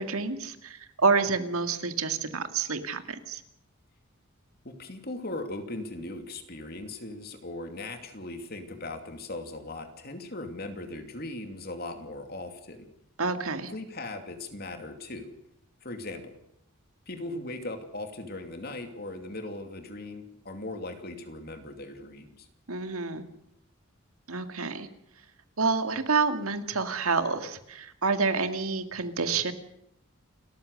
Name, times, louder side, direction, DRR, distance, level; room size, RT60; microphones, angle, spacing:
voice 1, 0.0-3.4 13.2-13.7 22.7-23.2 24.3-24.9 25.6-29.5, right 4 dB, 80° right, 8 dB, 2.0 m, -28 dB
voice 2, 4.6-12.9 13.7-15.3 15.8-16.3 17.1-22.5, left 2 dB, 45° left, 7 dB, 2.7 m, -39 dB
29.0 x 14.0 x 6.6 m, 0.77 s
head